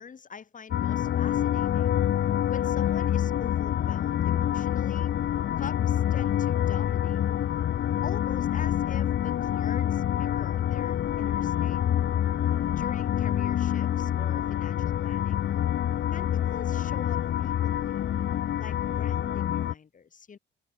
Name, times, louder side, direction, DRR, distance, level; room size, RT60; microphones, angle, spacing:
voice 1, 0.0-2.0 2.5-5.1 5.6-7.2 8.0-11.8 12.7-15.5 16.1-18.0 18.6-20.4, left 6 dB, 40° left, 3.2 m, -44 dB
sound 1, 0.7-19.7, left 11 dB, 65° left, 1.4 m, -27 dB
cardioid pair, 90°, 20 cm